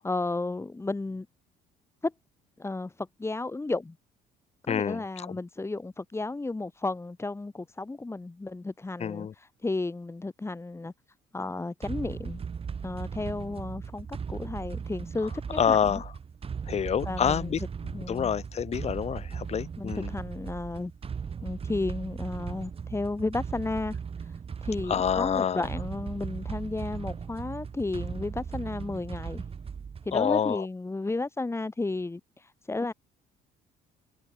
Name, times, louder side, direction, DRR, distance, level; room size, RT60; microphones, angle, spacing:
voice 1, 0.0-1.3 2.0-2.1 2.6-4.0 4.6-10.9 11.3-12.4 12.8-16.0 17.1-17.5 17.9-18.3 19.8-20.9 21.4-29.4 30.0-32.9, left 2 dB, 15° left, 5.4 m, -33 dB
voice 2, 4.7-5.4 9.0-9.3 15.5-16.1 16.7-17.6 18.1-20.1 24.9-25.7 30.1-30.7, left 8 dB, 40° left, 1.4 m, -27 dB
sound 1, 11.8-30.2, right 6 dB, 35° right, 3.1 m, -38 dB
cardioid pair, 110°, 17 cm